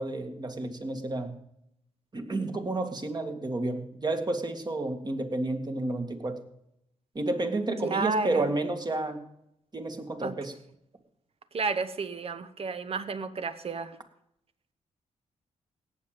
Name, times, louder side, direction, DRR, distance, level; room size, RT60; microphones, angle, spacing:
voice 1, 0.0-1.3 2.1-6.4 7.1-9.2 9.7-10.5, right 2 dB, 35° right, 5 dB, 2.2 m, -31 dB
voice 2, 7.8-8.4 10.2-10.3 11.5-14.0, right 4 dB, 50° right, 12 dB, 1.2 m, -31 dB
17.5 x 7.7 x 5.2 m, 0.76 s
cardioid pair, 75°, 13 cm